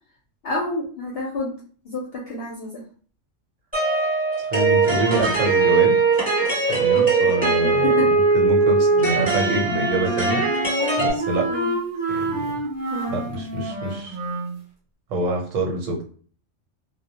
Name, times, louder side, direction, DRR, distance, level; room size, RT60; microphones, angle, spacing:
voice 1, 0.4-1.6 1.8-2.8 6.9-8.1 11.5-11.7 12.9-13.1, left 1 dB, 65° left, -3 dB, 0.7 m, -29 dB
sound 1, 3.7-11.1, right 4 dB, 10° right, 0.9 m, -20 dB
voice 2, 4.4-6.0 6.7-11.5 12.1-12.5 13.1-14.2 15.1-16.0, right 1 dB, 85° right, 1 dB, 1.1 m, -26 dB
Wind instrument woodwind instrument, 8.9-14.6, right 1 dB, 50° right, 0.8 m, -28 dB
2.1 x 2.1 x 2.7 m, 0.43 s
omnidirectional pair, 1.3 m